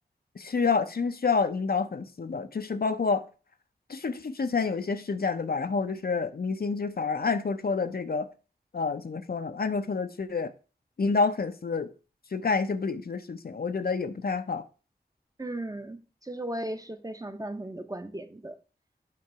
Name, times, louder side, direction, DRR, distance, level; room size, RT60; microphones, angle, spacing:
voice 1, 0.4-3.2 3.9-8.3 8.7-10.5 11.0-11.9 12.3-14.6, left 4 dB, 60° left, 0.6 m, -28 dB
voice 2, 15.4-18.6, right 1 dB, 20° right, 0.8 m, -36 dB
7.6 x 3.9 x 4.6 m
cardioid pair, 45°, 17 cm